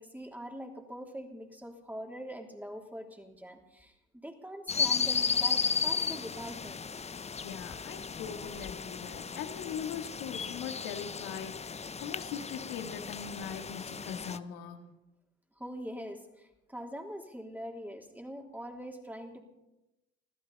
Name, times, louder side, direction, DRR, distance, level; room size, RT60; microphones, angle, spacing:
voice 1, 0.0-6.9 15.6-19.4, equal, 5° right, 2 dB, 3.3 m, -43 dB
sound 1, 4.7-14.4, left 5 dB, 20° left, 0.6 m, -34 dB
voice 2, 7.4-14.8, left 8 dB, 75° left, 6 dB, 1.9 m, -41 dB
24.0 x 14.5 x 4.2 m, 0.94 s
hypercardioid pair, 60°, 32 cm